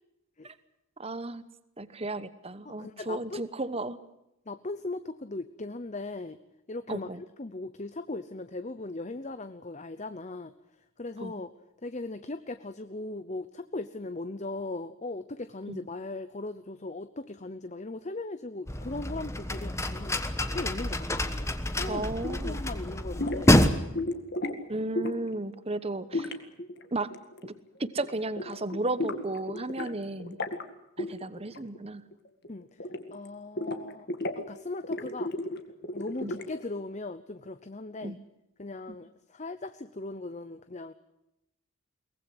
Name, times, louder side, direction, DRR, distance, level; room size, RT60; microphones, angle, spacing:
voice 1, 1.0-1.4 1.8-4.0 6.9-7.2 11.2-11.3 15.7-15.8 21.9-22.6 24.7-26.3 26.9-27.1 27.4-27.5 27.8-30.4 31.0-32.0 36.2-36.3 38.0-38.2, right 2 dB, 25° right, 14 dB, 1.0 m, -34 dB
voice 2, 2.7-3.4 4.5-6.4 6.7-10.5 11.0-11.5 11.8-20.2 20.5-21.5 21.8-24.0 32.5-32.7 33.1-34.1 34.4-35.3 35.9-38.2 38.6-40.9, left 2 dB, 30° left, 11 dB, 0.7 m, -38 dB
sound 1, 18.7-23.7, left 1 dB, 15° left, 1.2 m, -27 dB
sound 2, 23.2-23.5 23.9-24.6 24.9-25.3 26.1-27.6 27.9-28.1 28.4-29.9 30.2-30.6 31.0-31.9 32.1-33.3 33.6-34.4 34.8-36.6, left 2 dB, 50° left, 2.0 m, -34 dB
23.0 x 19.0 x 8.0 m, 0.88 s
head